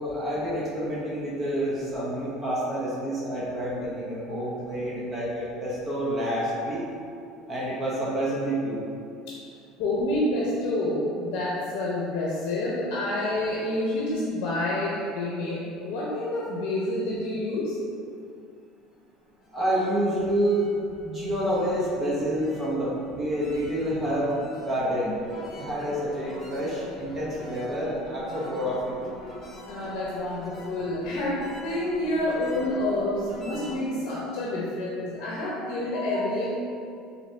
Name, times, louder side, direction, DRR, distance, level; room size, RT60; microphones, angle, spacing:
voice 1, 0.0-6.8 7.5-8.8 19.5-20.7 21.0-28.9, right 1 dB, 20° right, -7 dB, 0.8 m, -28 dB
voice 2, 9.8-17.8 29.6-36.5, left 1 dB, 70° left, -5 dB, 0.7 m, -28 dB
sound 1, 19.3-33.8, equal, 15° left, 1.3 m, -44 dB
4.0 x 2.8 x 3.3 m, 2.4 s
cardioid pair, 145°, 0 cm